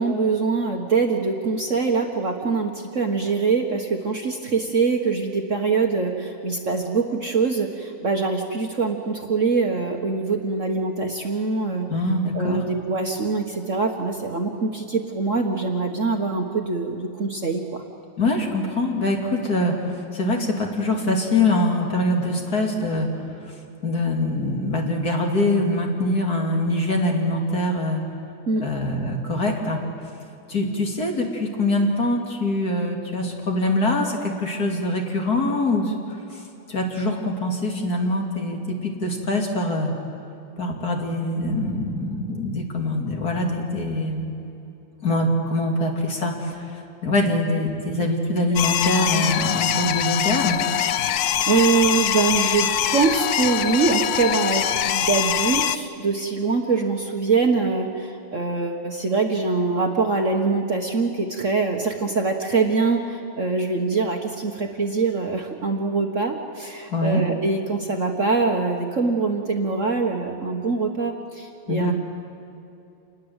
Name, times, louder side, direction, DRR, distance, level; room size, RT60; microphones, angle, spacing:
voice 1, 0.0-11.9 12.3-17.8 28.5-28.6 48.0-48.1 49.1-49.2 50.9-51.0 51.5-71.9, right 4 dB, 40° right, 3 dB, 1.5 m, -23 dB
voice 2, 11.9-12.6 18.2-19.8 20.1-23.1 23.8-28.0 28.6-29.8 30.5-35.9 36.7-39.9 40.6-44.3 45.0-46.6 47.0-50.6 66.9-67.2 71.7-71.9, left 1 dB, 45° left, 1 dB, 3.1 m, -23 dB
sound 1, 48.6-55.8, left 10 dB, 65° left, 1.0 m, -23 dB
28.0 x 20.0 x 8.0 m, 2.7 s
omnidirectional pair, 2.2 m